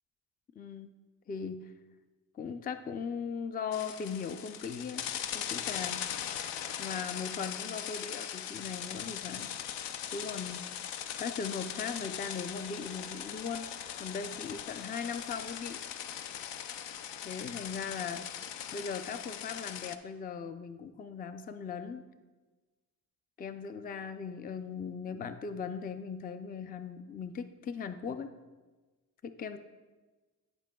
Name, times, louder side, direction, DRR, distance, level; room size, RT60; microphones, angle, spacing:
voice 1, 0.6-0.9 1.3-1.7 2.3-5.1 5.3-6.1 6.8-9.5 10.1-10.8 11.2-13.7 14.0-15.8 17.2-18.3 18.7-22.0 23.4-28.3 29.2-29.6, left 6 dB, 25° left, 10 dB, 0.4 m, -38 dB
sound 1, 3.7-20.0, left 9 dB, 80° left, 0.6 m, -40 dB
14.0 x 5.2 x 2.2 m, 1.3 s
cardioid pair, 75°, 42 cm